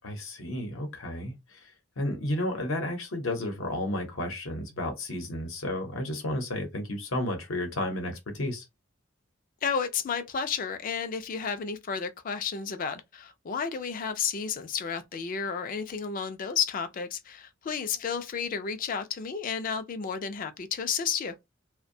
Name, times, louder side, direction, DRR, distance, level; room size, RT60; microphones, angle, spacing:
voice 1, 0.0-1.6 2.0-8.7, left 1 dB, 75° left, 0.8 m, -32 dB
voice 2, 9.6-21.3, left 6 dB, 40° left, 0.3 m, -32 dB
2.5 x 2.1 x 2.6 m
head